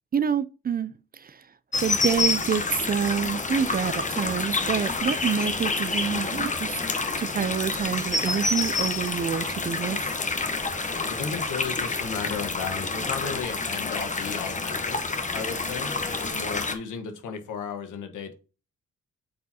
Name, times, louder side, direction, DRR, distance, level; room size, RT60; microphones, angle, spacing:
voice 1, 0.1-0.9 1.2-1.3 1.8-6.7 7.2-10.0, right 7 dB, 30° right, 0.4 m, -27 dB
sound 1, 1.7-16.7, left 3 dB, 25° left, 1.0 m, -28 dB
voice 2, 11.1-15.0 15.3-18.3, left 6 dB, 90° left, 1.3 m, -34 dB
8.3 x 4.5 x 2.8 m
cardioid pair, 80°, 30 cm